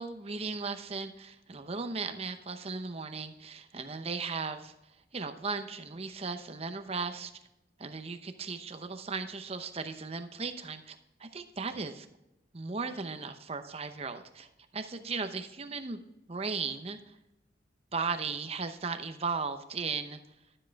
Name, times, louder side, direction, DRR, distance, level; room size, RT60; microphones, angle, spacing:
voice 1, 0.0-4.7 5.1-7.3 7.8-12.1 12.5-14.5 14.7-16.0 16.3-17.0 17.9-20.2, right 4 dB, 35° right, 8 dB, 0.8 m, -36 dB
12.0 x 7.7 x 3.5 m, 0.91 s
head